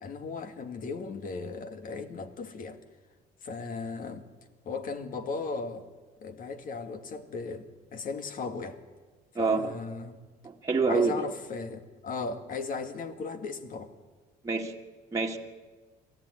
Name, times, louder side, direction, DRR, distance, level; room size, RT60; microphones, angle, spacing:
voice 1, 0.0-2.8 3.4-4.3 4.7-5.9 6.2-8.8 9.4-10.2 10.9-13.9, left 4 dB, 55° left, 2.1 m, -36 dB
voice 2, 9.4-9.7 10.6-11.1 14.4-14.7 15.1-15.4, right 4 dB, 20° right, 2.0 m, -26 dB
23.5 x 15.0 x 9.6 m
cardioid pair, 110°, 17 cm